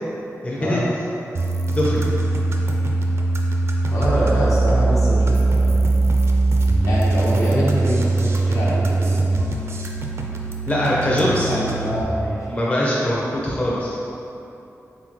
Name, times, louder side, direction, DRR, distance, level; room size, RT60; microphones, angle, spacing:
voice 1, 0.4-0.8 1.7-2.0 10.7-11.8 12.5-14.0, left 1 dB, 20° left, -7 dB, 0.6 m, -22 dB
sound 1, 1.3-12.0, right 3 dB, 50° right, 0.4 m, -21 dB
voice 2, 3.9-5.9 6.8-9.2 11.1-12.5, equal, 70° left, -8 dB, 1.1 m, -25 dB
3.9 x 3.8 x 3.0 m, 2.9 s
wide cardioid pair, 140°, 6 cm